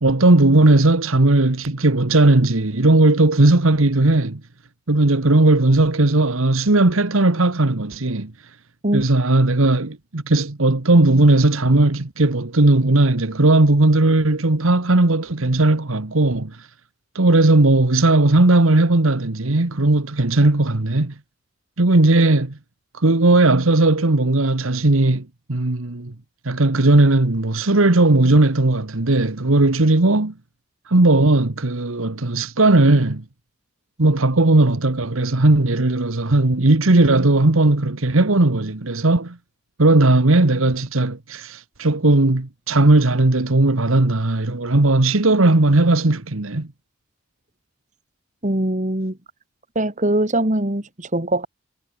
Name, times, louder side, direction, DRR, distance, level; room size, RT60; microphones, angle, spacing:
voice 1, 0.0-4.4 4.9-8.3 8.9-16.6 17.1-21.1 21.8-22.6 22.9-26.1 26.4-30.3 30.9-33.2 34.0-39.4 39.8-46.7, right 2 dB, 75° right, 1.5 m, -17 dB
voice 2, 48.4-49.2 49.7-51.5, right 1 dB, 35° right, 2.7 m, -22 dB
head